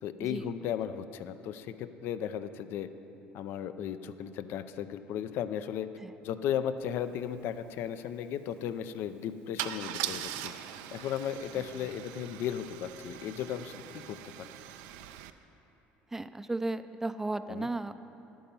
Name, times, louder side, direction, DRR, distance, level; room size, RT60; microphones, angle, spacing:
voice 1, 0.0-2.9 3.3-5.9 6.2-10.5 10.9-14.2 17.5-17.7, left 9 dB, 65° left, 12 dB, 0.5 m, -35 dB
Car / Engine starting / Idling, 7.0-7.1 7.3-7.6 9.6-15.3, right 12 dB, 85° right, 0.4 m, -41 dB
voice 2, 16.1-18.0, right 2 dB, 10° right, 11 dB, 0.4 m, -35 dB
10.5 x 8.7 x 5.4 m, 3.0 s
supercardioid pair, 100°, 4 cm